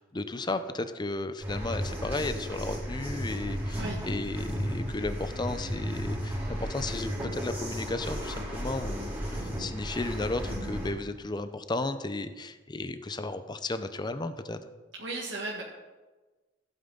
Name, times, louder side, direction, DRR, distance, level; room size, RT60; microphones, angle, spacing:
voice 1, 0.0-14.6, left 2 dB, 25° left, 10 dB, 0.7 m, -34 dB
sound 1, 1.4-10.9, equal, 10° right, 3.6 m, -34 dB
voice 2, 14.9-15.6, right 2 dB, 80° right, -3 dB, 1.7 m, -35 dB
15.0 x 9.0 x 4.0 m, 1.2 s
head